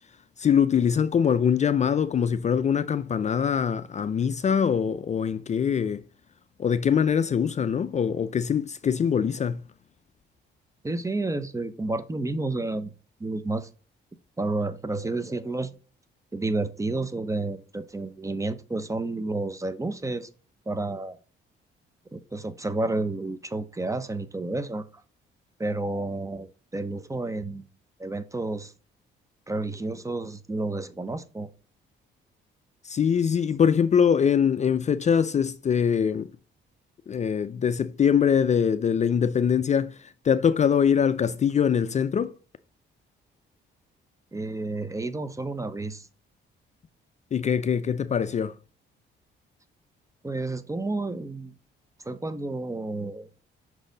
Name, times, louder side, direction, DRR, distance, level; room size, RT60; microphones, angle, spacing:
voice 1, 0.4-6.0 6.6-9.6 32.8-36.3 37.1-42.3 47.3-48.5, left 7 dB, 35° left, 0.4 m, -23 dB
voice 2, 10.8-12.9 13.2-13.7 14.4-15.7 16.3-20.3 20.7-21.2 22.1-24.9 25.6-27.7 28.0-28.7 29.5-31.5 44.3-46.1 50.2-51.5 52.0-53.3, right 2 dB, 15° right, 0.7 m, -30 dB
6.2 x 4.1 x 3.9 m
cardioid pair, 90°, 20 cm